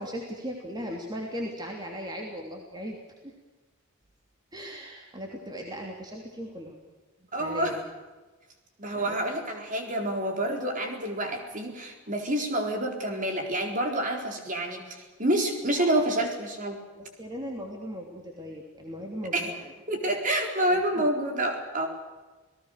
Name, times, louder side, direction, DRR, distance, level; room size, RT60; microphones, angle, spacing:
voice 1, 0.0-3.0 3.2-3.3 4.5-6.8 7.2-7.8 8.9-9.2 15.8-16.1 17.0-19.7 20.7-21.1, equal, 20° right, 0 dB, 3.1 m, -38 dB
voice 2, 7.3-7.8 8.8-16.8 19.3-19.5 19.9-21.9, right 1 dB, 35° right, 3 dB, 4.1 m, -28 dB
28.5 x 19.0 x 6.6 m, 1.2 s
head